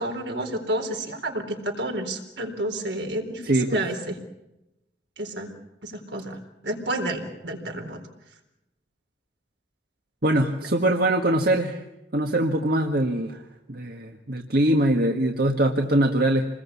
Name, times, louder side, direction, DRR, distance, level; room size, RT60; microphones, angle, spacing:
voice 1, 0.0-4.2 5.2-5.5 5.8-6.4 6.6-8.0, right 1 dB, 75° right, 3 dB, 4.1 m, -30 dB
voice 2, 3.4-3.8 10.2-11.8 12.1-13.4 13.7-16.5, right 1 dB, 55° right, 4 dB, 1.6 m, -22 dB
27.0 x 21.0 x 8.5 m, 0.92 s
head